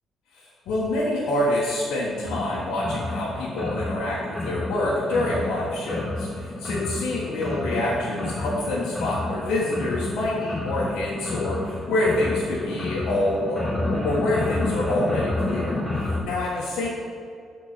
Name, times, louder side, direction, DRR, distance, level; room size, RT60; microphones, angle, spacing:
voice 1, 0.3-16.9, left 1 dB, 85° left, -7 dB, 1.5 m, -26 dB
sound 1, 2.3-16.2, left 2 dB, 10° left, 1.8 m, -30 dB
12.5 x 4.6 x 4.4 m, 2.4 s
cardioid pair, 90°, 0 cm